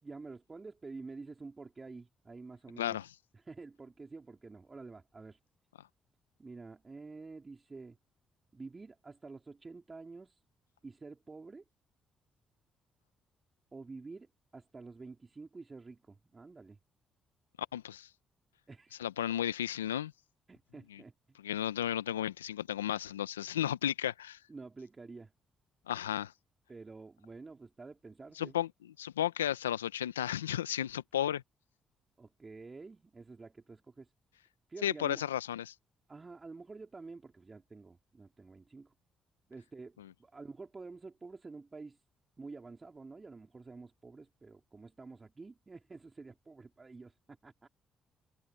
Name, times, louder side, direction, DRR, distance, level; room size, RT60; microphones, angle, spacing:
voice 1, 0.0-3.0 3.3-5.4 6.4-8.0 8.5-10.4 10.8-11.6 13.7-16.8 18.7-19.0 20.5-21.4 24.5-25.3 26.7-28.5 32.2-34.1 34.7-35.2 36.1-38.9 39.5-42.0 42.4-47.7, right 3 dB, 30° right, 3.6 m, -49 dB
voice 2, 2.8-3.1 17.7-18.1 19.0-20.1 20.9-21.0 21.4-24.4 25.9-26.3 28.4-28.7 29.0-31.4 34.8-35.7, left 11 dB, 90° left, 0.7 m, -33 dB
open air
hypercardioid pair, 40°, 0 cm